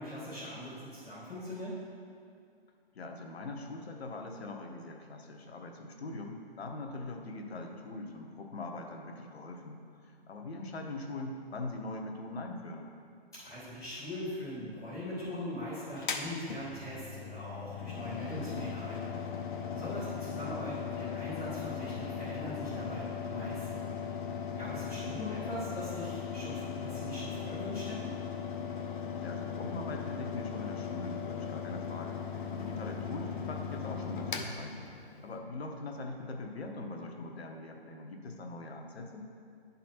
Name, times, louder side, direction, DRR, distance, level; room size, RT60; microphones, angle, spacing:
voice 1, 0.0-1.8 13.4-19.0 19.7-23.8 24.6-28.1, left 1 dB, 5° left, -16 dB, 0.4 m, -41 dB
voice 2, 2.9-12.9 19.7-20.1 24.7-25.0 29.2-34.8 35.2-39.3, left 2 dB, 75° left, 2 dB, 1.1 m, -42 dB
Mechanical fan, 16.0-35.4, left 6 dB, 50° left, 0.7 m, -38 dB
9.6 x 4.1 x 4.3 m, 2.3 s
hypercardioid pair, 160°, 32 cm